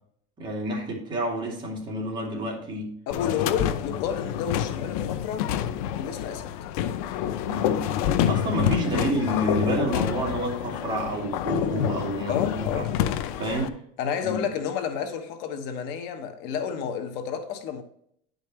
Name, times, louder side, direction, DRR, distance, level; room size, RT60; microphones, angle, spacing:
voice 1, 0.4-2.9 7.5-7.8 8.3-12.8 13.4-13.8 14.2-14.4, right 1 dB, 25° right, 2.5 m, -29 dB
sound 1, 3.1-13.7, left 10 dB, 90° left, 0.6 m, -27 dB
voice 2, 3.1-5.5 5.9-6.5 12.3-12.9 14.0-17.8, left 7 dB, 70° left, 1.1 m, -30 dB
10.5 x 5.2 x 3.0 m
cardioid pair, 140°, 18 cm